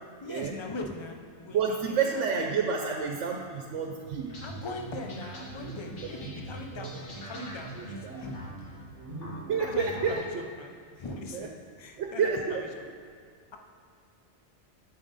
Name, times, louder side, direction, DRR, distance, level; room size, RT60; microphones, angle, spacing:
voice 1, 0.2-2.5 4.4-8.5 9.6-12.9, left 2 dB, 35° left, 3 dB, 0.5 m, -41 dB
voice 2, 1.5-4.3 6.0-6.3 6.8-7.0 7.8-8.2 9.0-10.4 11.3-11.5 12.0-12.6, right 6 dB, 90° right, 2 dB, 1.0 m, -30 dB
sound 1, 4.2-10.1, right 1 dB, 80° left, 1.8 m, -42 dB
7.5 x 7.1 x 4.0 m, 2.2 s
omnidirectional pair, 1.2 m